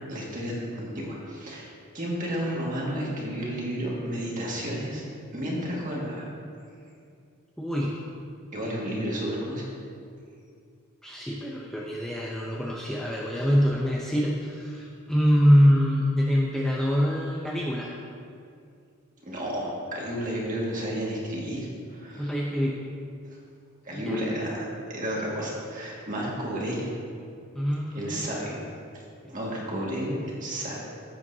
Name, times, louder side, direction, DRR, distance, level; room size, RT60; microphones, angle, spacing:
voice 1, 0.0-1.7 1.9-5.0 5.3-6.3 8.5-9.7 19.2-22.3 23.8-26.9 27.9-28.6 28.9-29.0 29.3-30.8, equal, 35° right, -4 dB, 1.9 m, -32 dB
voice 2, 7.6-7.9 11.0-17.9 22.2-22.8 23.9-24.2 27.5-28.3 29.2-29.3, equal, ahead, -4 dB, 0.6 m, -24 dB
15.0 x 7.7 x 2.8 m, 2.4 s
head